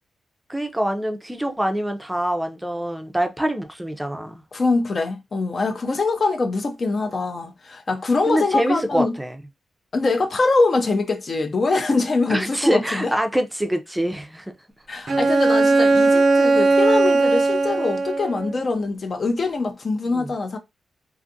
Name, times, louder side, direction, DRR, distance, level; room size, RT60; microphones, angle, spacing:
voice 1, 0.5-4.4 8.3-9.4 12.3-14.5 20.1-20.3, right 1 dB, 5° right, 0.5 m, -25 dB
voice 2, 4.5-9.1 9.9-13.1 14.9-20.6, left 3 dB, 45° left, 0.5 m, -23 dB
Bowed string instrument, 15.1-18.6, right 3 dB, 55° right, 0.4 m, -18 dB
2.5 x 2.4 x 2.6 m
cardioid pair, 75°, 0 cm